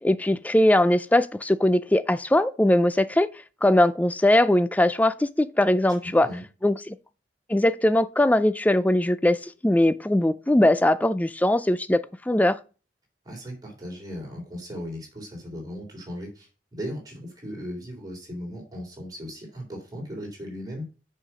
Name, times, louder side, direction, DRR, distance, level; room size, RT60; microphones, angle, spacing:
voice 1, 0.0-3.3 3.6-6.3 6.6-7.0 7.5-12.6, left 1 dB, 10° left, 0.4 m, -21 dB
voice 2, 13.2-20.9, equal, 20° right, 3.4 m, -37 dB
6.5 x 5.7 x 6.1 m
head